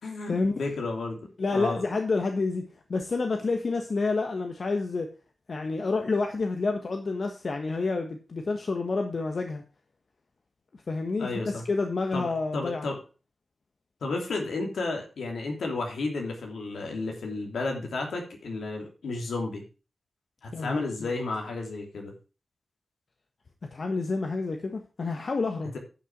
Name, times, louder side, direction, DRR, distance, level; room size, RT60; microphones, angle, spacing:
voice 1, 0.0-1.2 1.5-1.8 11.2-11.6 12.1-12.9 14.0-19.6 20.4-22.1, left 3 dB, 80° left, 1 dB, 3.0 m, -32 dB
voice 2, 1.4-5.1 5.5-9.6 10.9-12.8 20.5-21.1 23.7-25.7, left 3 dB, 60° left, 4 dB, 1.5 m, -29 dB
10.5 x 5.8 x 6.0 m, 0.34 s
cardioid pair, 40°, 0 cm